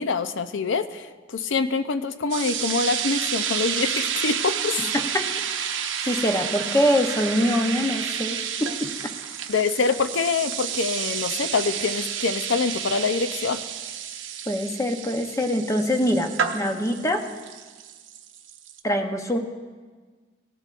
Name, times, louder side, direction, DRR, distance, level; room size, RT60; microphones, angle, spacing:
voice 1, 0.0-4.8 9.5-13.6, left 4 dB, 75° left, 11 dB, 0.5 m, -25 dB
sound 1, 2.3-18.8, right 8 dB, 75° right, 0.8 m, -30 dB
voice 2, 4.8-5.3 6.1-8.9 14.5-17.2 18.8-19.4, equal, 15° left, 5 dB, 0.7 m, -24 dB
18.0 x 11.5 x 2.5 m, 1.4 s
head